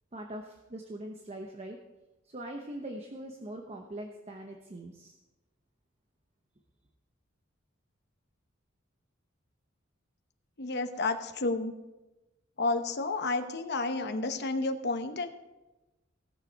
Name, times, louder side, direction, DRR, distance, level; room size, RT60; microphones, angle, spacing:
voice 1, 0.1-1.8 2.3-5.2, right 1 dB, 30° right, 2 dB, 0.9 m, -42 dB
voice 2, 10.6-11.7 12.6-15.3, left 3 dB, 55° left, 7 dB, 1.0 m, -31 dB
17.0 x 6.8 x 4.6 m, 1.1 s
head